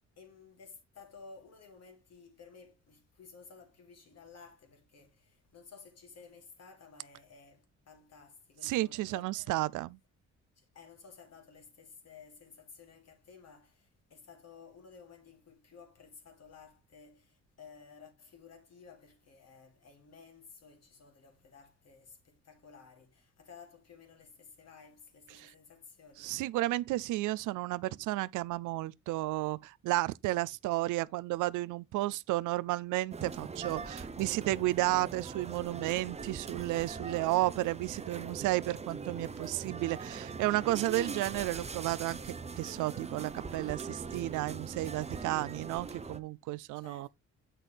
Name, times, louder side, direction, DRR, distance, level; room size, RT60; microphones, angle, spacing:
voice 1, 0.2-9.7 10.6-26.4 46.7-47.1, left 5 dB, 55° left, 2.9 m, -55 dB
voice 2, 8.6-10.0 25.3-25.5 26.2-47.1, right 18 dB, 85° right, 0.5 m, -32 dB
sound 1, 33.1-46.2, right 4 dB, 20° right, 0.7 m, -42 dB
8.1 x 5.8 x 3.4 m
cardioid pair, 90°, 30 cm